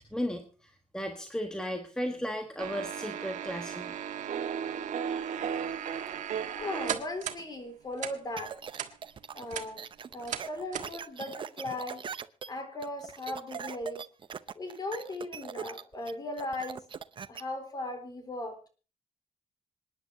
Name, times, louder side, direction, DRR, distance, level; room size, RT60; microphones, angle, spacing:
voice 1, 0.1-4.0, equal, 5° left, 5 dB, 1.4 m, -35 dB
sound 1, 2.6-7.4 8.0-8.1 8.7-8.9 9.3-9.7 10.3-10.4 10.7-10.9, right 8 dB, 80° right, 1.6 m, -35 dB
voice 2, 6.5-8.5 9.3-9.8 10.1-12.0 12.5-14.0 14.6-16.8 17.3-18.6, left 2 dB, 30° left, 7 dB, 3.8 m, -37 dB
sound 2, 8.4-17.4, right 7 dB, 40° right, 0.7 m, -41 dB
26.5 x 10.0 x 2.8 m, 0.35 s
cardioid pair, 140°, 13 cm